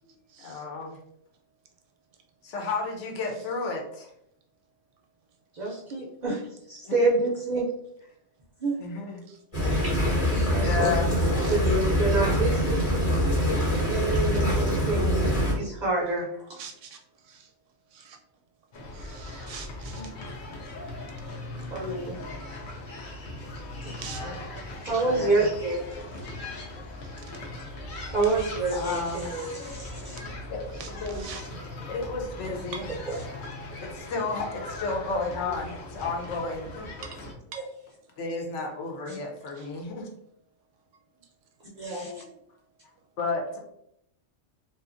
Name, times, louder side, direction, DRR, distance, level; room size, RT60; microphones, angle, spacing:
voice 1, 0.4-1.0 2.4-4.1 6.9-7.1 8.8-9.2 10.5-11.1 20.5-20.6 24.2-24.4 25.0-25.4 27.8-28.0 28.7-29.3 30.5-31.6 31.9-32.9 33.7-36.9 38.2-40.1 41.9-42.3 43.2-43.6, left 4 dB, 75° left, 1 dB, 0.9 m, -32 dB
voice 2, 5.5-7.7 8.6-8.8 9.8-10.9 11.5-12.9 13.9-16.6 20.0-20.1 21.7-22.2 23.8-24.0 24.8-25.9 28.1-30.2 33.1-33.2 37.5-37.6 39.1-39.2 41.8-42.2, right 3 dB, 55° right, -3 dB, 0.5 m, -28 dB
sound 1, 9.5-15.5, equal, 30° left, 0.9 m, -24 dB
voice 3, 16.6-17.0 17.3-17.4 17.9-18.2 18.9-20.0 23.9-24.2 30.8-30.9 31.2-31.4, right 7 dB, 85° right, 3 dB, 0.9 m, -43 dB
sound 2, 18.7-37.3, left 2 dB, 55° left, 0.6 m, -39 dB
2.7 x 2.4 x 2.4 m, 0.75 s
omnidirectional pair, 1.2 m